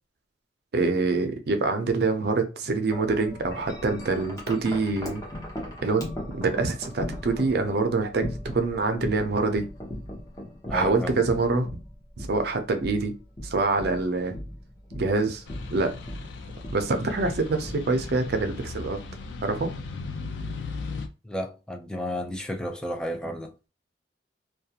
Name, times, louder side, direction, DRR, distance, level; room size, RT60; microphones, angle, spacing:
voice 1, 0.7-5.2 5.8-6.1 6.3-9.7 10.7-11.7 12.3-13.1 13.4-14.4 14.9-15.4 15.7-15.9 16.7-19.0 19.4-19.7, right 3 dB, 60° right, 0.5 m, -25 dB
Wind chime, 2.9-19.1, left 1 dB, 20° left, 0.8 m, -39 dB
voice 2, 10.7-11.3 21.2-23.5, left 1 dB, 5° left, 0.3 m, -32 dB
sound 1, 15.5-21.1, left 3 dB, 80° left, 0.4 m, -37 dB
2.3 x 2.2 x 2.8 m
head